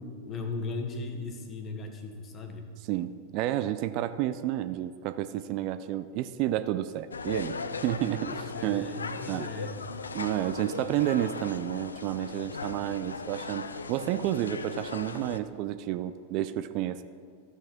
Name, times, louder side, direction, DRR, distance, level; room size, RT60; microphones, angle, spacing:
voice 1, 0.0-2.7 8.3-9.8, left 3 dB, 25° left, 4 dB, 1.3 m, -37 dB
voice 2, 2.9-7.6 7.8-8.3 8.6-8.9 9.3-9.5 10.1-17.0, right 13 dB, 40° right, 12 dB, 0.3 m, -30 dB
sound 1, 7.1-15.4, left 4 dB, 75° left, 0.4 m, -38 dB
14.0 x 5.9 x 4.4 m, 2.1 s
figure-of-eight pair, 90°, 0 cm